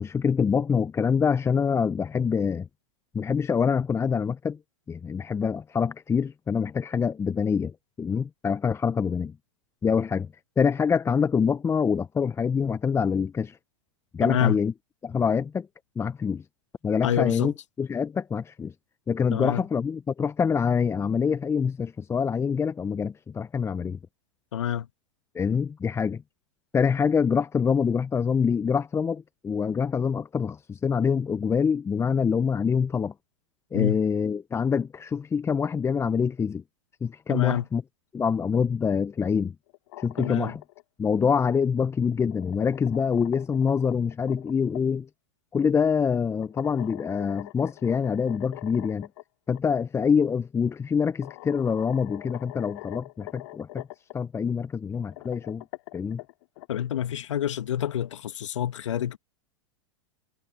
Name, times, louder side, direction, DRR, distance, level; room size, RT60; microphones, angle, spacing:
voice 1, 0.0-2.7 3.1-4.6 4.9-9.3 9.8-10.3 10.6-13.6 14.1-14.7 15.0-15.7 16.0-16.4 16.8-18.7 19.1-24.0 25.3-26.2 26.7-33.1 33.7-36.6 37.0-37.8 38.1-39.5 40.0-40.6 41.0-45.1 45.5-49.1 49.5-53.9 54.1-55.6 55.9-56.2, left 6 dB, 15° left, 0.9 m, -25 dB
voice 2, 14.2-14.6 17.0-17.5 19.3-19.6 24.5-24.9 33.7-34.0 37.3-37.7 40.2-40.5 56.7-59.2, left 10 dB, 75° left, 2.1 m, -27 dB
sound 1, 39.7-40.8 42.0-44.8 46.4-49.2 49.5-49.6 50.7-50.8 51.2-54.1 55.0-56.7, left 21 dB, 55° left, 3.1 m, -43 dB
hypercardioid pair, 100°, 16 cm